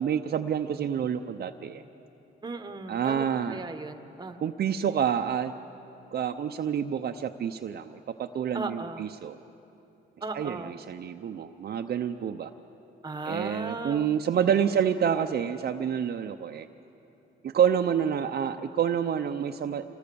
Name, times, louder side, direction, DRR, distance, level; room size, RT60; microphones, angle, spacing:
voice 1, 0.0-1.8 2.9-3.6 4.4-5.5 6.1-9.4 10.3-12.5 13.3-16.7 17.4-19.8, right 8 dB, 50° right, 5 dB, 0.7 m, -28 dB
voice 2, 2.4-4.4 8.5-9.1 10.2-10.7 13.0-14.8, right 3 dB, 20° right, 8 dB, 1.2 m, -37 dB
26.0 x 19.0 x 7.0 m, 2.9 s
cardioid pair, 90°, 20 cm